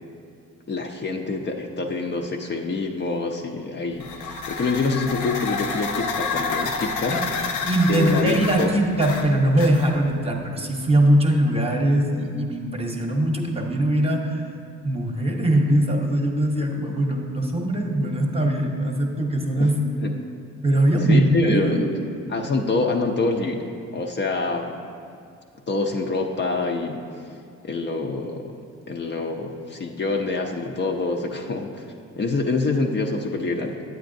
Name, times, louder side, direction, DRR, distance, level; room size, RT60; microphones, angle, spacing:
voice 1, 0.7-4.2 4.5-7.2 7.9-8.7 19.6-19.7 20.0-20.1 21.1-22.0 22.3-24.8 25.7-27.0 27.6-28.6 28.9-31.9 32.2-33.8, left 3 dB, 35° left, 1 dB, 0.5 m, -26 dB
sound 1, 4.0-10.1, left 4 dB, 90° left, 0.7 m, -29 dB
voice 2, 7.7-14.4 14.8-20.0 20.6-21.8, right 1 dB, 20° right, 1 dB, 0.8 m, -21 dB
9.2 x 8.0 x 2.6 m, 2.3 s
cardioid pair, 90°, 30 cm